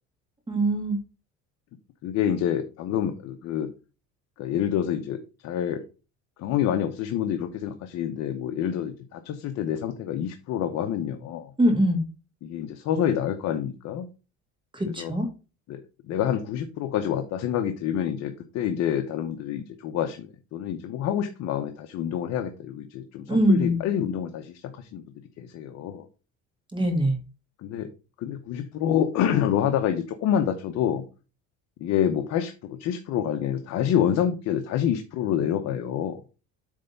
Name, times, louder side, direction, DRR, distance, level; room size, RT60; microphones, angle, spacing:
voice 1, 0.5-1.0 11.6-12.0 14.7-15.3 23.3-23.8 26.7-27.2, right 1 dB, 15° right, 4 dB, 1.8 m, -22 dB
voice 2, 2.0-3.7 4.4-5.2 5.4-5.8 6.4-11.5 12.4-14.1 15.0-15.1 15.7-15.8 16.1-25.0 25.4-26.1 27.6-27.9 28.2-31.0 31.8-36.2, left 9 dB, 55° left, 6 dB, 0.9 m, -27 dB
8.4 x 3.4 x 5.3 m, 0.32 s
cardioid pair, 135°, 31 cm